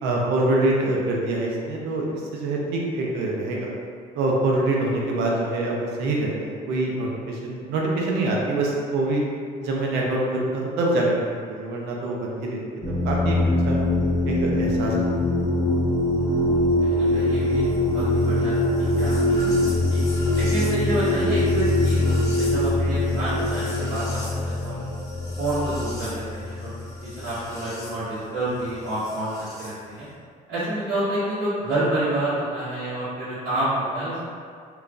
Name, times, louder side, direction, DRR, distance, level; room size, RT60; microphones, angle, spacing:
voice 1, 0.0-3.7 4.1-9.2 9.6-11.2 11.5-12.6 12.9-13.4 13.7-13.8 14.3-15.0, right 2 dB, 90° right, -2 dB, 0.5 m, -25 dB
sound 1, 12.8-27.9 29.0-29.7, left 1 dB, 20° left, 0.7 m, -23 dB
voice 2, 16.2-20.0 20.4-24.9 25.4-26.7 27.0-30.1 30.5-34.2, right 1 dB, 70° right, -16 dB, 1.3 m, -29 dB
2.9 x 2.3 x 2.5 m, 2.1 s
cardioid pair, 110°, 17 cm